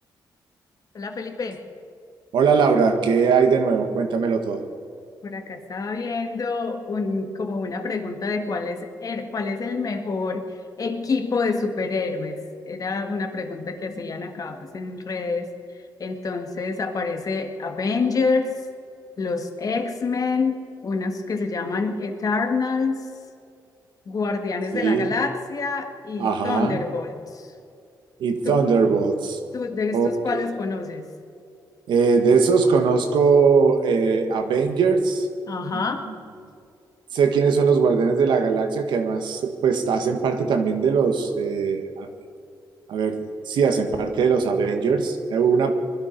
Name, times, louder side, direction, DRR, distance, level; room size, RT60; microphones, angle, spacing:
voice 1, 0.9-1.6 5.2-10.5 10.8-15.5 16.0-18.6 19.2-23.1 24.1-27.5 28.4-28.7 29.5-31.1 35.5-36.1, left 4 dB, 50° left, 6 dB, 1.8 m, -27 dB
voice 2, 2.3-4.6 24.7-25.1 26.2-26.8 28.2-29.4 29.9-30.4 31.9-35.3 35.7-35.8 37.1-42.1 42.9-43.2 43.5-45.7, right 5 dB, 80° right, 6 dB, 1.7 m, -20 dB
20.5 x 12.0 x 5.3 m, 2.4 s
cardioid pair, 80°, 8 cm